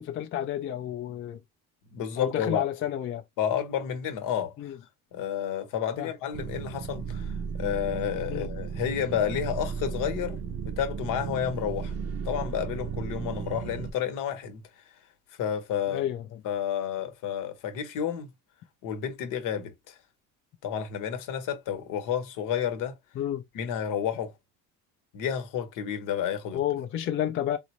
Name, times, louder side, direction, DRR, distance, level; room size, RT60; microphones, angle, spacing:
voice 1, 0.0-1.4 2.2-3.2 4.6-4.8 6.0-6.1 8.3-8.5 15.9-16.4 23.2-23.4 26.5-27.6, left 11 dB, 40° left, 0.5 m, -30 dB
voice 2, 1.9-2.7 3.4-4.7 5.1-10.4 10.6-11.9 12.2-14.6 15.4-16.1 16.4-18.3 18.8-20.0 20.6-23.0 23.5-24.3 25.1-26.6, left 9 dB, 65° left, 1.0 m, -30 dB
scifi ruined environment, 6.3-13.9, right 6 dB, 45° right, 0.6 m, -35 dB
3.8 x 2.0 x 2.9 m
cardioid pair, 105°, 34 cm